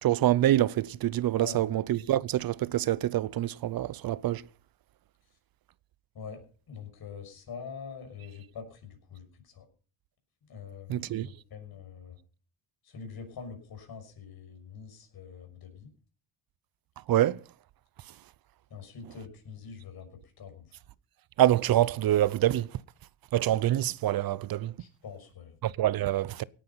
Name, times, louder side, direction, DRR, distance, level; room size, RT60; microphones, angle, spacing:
voice 1, 0.0-4.4 10.9-11.3 17.1-17.4 21.4-22.8 23.3-24.7 25.6-26.4, right 13 dB, 50° right, 0.7 m, -26 dB
voice 2, 6.7-9.7 10.5-12.2 12.8-15.9 18.7-20.7 24.8-25.6, left 6 dB, 50° left, 6.2 m, -44 dB
17.5 x 10.0 x 5.6 m
cardioid pair, 125°, 48 cm